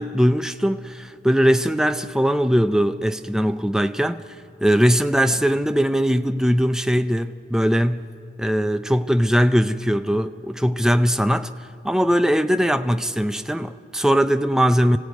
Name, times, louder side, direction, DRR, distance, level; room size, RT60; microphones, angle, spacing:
voice 1, 0.0-4.2 4.6-8.1 8.4-11.5 11.8-15.0, equal, 5° right, 0.5 m, -20 dB
25.5 x 16.0 x 9.3 m
head